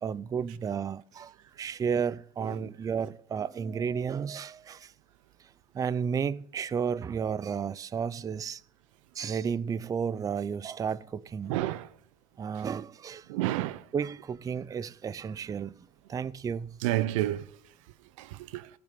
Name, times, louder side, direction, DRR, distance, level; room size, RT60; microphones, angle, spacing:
voice 1, 0.0-4.9 5.4-5.5 5.7-8.6 9.1-11.5 12.4-13.3 13.9-16.8, right 7 dB, 20° right, 0.4 m, -32 dB
voice 2, 11.5-11.9 13.3-13.8 16.8-17.5 18.2-18.7, right 15 dB, 80° right, 0.7 m, -30 dB
14.0 x 6.9 x 6.7 m
supercardioid pair, 105°, 17 cm